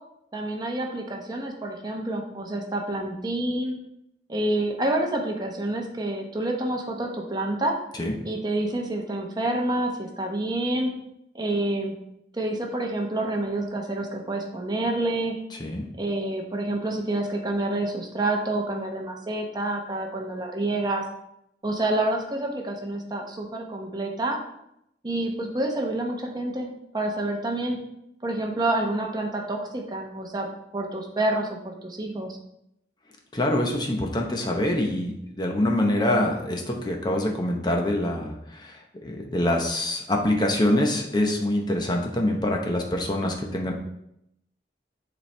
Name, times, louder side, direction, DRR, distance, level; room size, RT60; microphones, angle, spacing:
voice 1, 0.3-3.7 4.3-7.8 8.2-10.9 11.3-11.9 12.3-15.4 16.0-21.0 21.6-24.4 25.0-27.8 28.2-30.5 30.7-32.4, right 1 dB, 25° right, 1 dB, 0.9 m, -28 dB
voice 2, 33.3-43.7, left 1 dB, 25° left, 1 dB, 0.8 m, -25 dB
10.0 x 4.3 x 3.3 m, 0.79 s
head